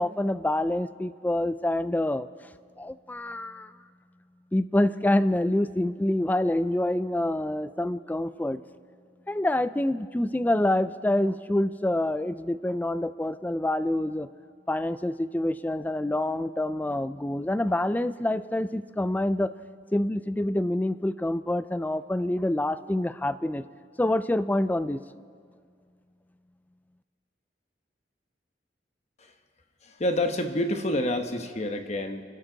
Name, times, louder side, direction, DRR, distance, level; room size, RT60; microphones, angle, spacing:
voice 1, 0.0-2.3 2.8-3.7 4.5-8.6 9.3-14.3 14.7-19.5 19.9-23.6 24.0-25.0, left 1 dB, 10° left, 14 dB, 0.3 m, -26 dB
voice 2, 29.8-32.2, left 1 dB, 40° left, 6 dB, 1.0 m, -28 dB
28.0 x 12.5 x 3.9 m, 2.1 s
head